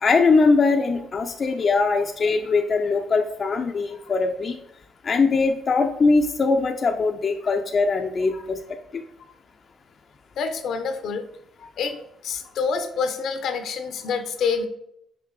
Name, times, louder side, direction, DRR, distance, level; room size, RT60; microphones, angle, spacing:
voice 1, 0.0-4.5 5.0-8.6 8.9-9.0, left 4 dB, 45° left, 3 dB, 0.6 m, -21 dB
voice 2, 10.4-11.3 11.6-14.7, left 5 dB, 75° left, 7 dB, 0.9 m, -27 dB
6.0 x 5.0 x 4.8 m, 0.75 s
cardioid pair, 90°, 0 cm